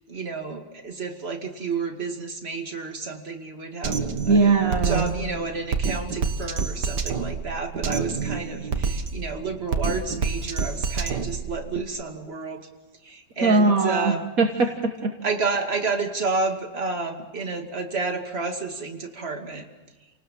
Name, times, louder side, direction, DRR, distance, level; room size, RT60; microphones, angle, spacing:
voice 1, 0.1-4.5 4.8-12.7 13.0-14.3 15.2-19.6, right 3 dB, 35° right, 3 dB, 2.6 m, -30 dB
Drum kit, 3.8-11.8, right 5 dB, 70° right, 2.0 m, -28 dB
voice 2, 4.3-5.1 13.4-15.1, right 3 dB, 55° right, 4 dB, 1.8 m, -20 dB
29.5 x 19.0 x 7.5 m, 1.2 s
omnidirectional pair, 1.9 m